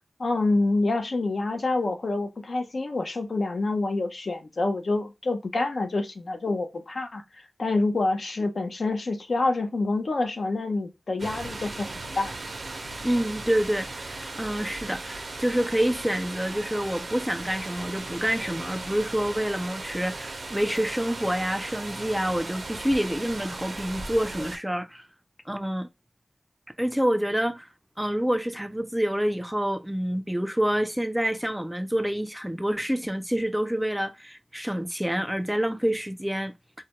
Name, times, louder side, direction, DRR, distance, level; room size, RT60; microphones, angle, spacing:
voice 1, 0.2-11.9 12.2-12.3, left 2 dB, 70° left, 0.5 m, -27 dB
sound 1, 11.2-24.6, right 2 dB, 70° right, 0.5 m, -37 dB
voice 2, 13.0-25.1 25.5-25.9 26.8-27.7 28.0-36.5, equal, 5° right, 0.4 m, -27 dB
2.3 x 2.1 x 2.8 m
wide cardioid pair, 60°, 0 cm